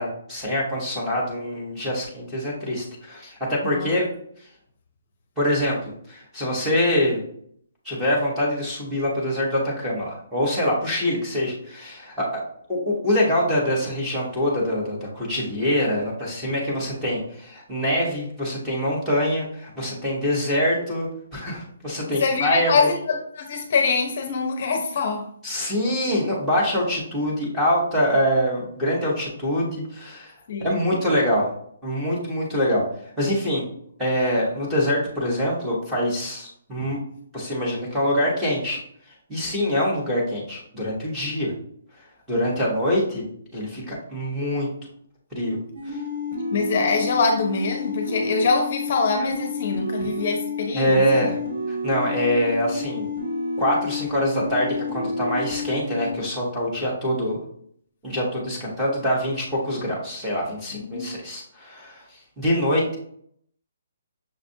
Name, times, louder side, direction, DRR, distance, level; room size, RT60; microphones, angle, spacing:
voice 1, 0.0-4.1 5.4-7.2 7.8-12.4 12.7-21.1 21.3-22.7 25.4-30.3 30.6-31.5 31.8-32.8 33.2-33.6 34.0-37.0 37.3-38.8 39.3-41.5 42.3-43.3 43.5-44.7 45.3-45.6 45.9-46.0 50.7-51.4 51.7-53.1 53.6-57.4 58.0-62.0 62.4-63.0, equal, 5° right, -6 dB, 0.9 m, -24 dB
voice 2, 22.1-25.2 30.5-30.8 46.5-51.3 60.7-61.1, left 4 dB, 40° left, 4 dB, 0.6 m, -24 dB
sound 1, 45.8-56.1, left 3 dB, 55° right, 1.1 m, -30 dB
6.2 x 2.4 x 2.6 m, 0.65 s
hypercardioid pair, 175°, 0 cm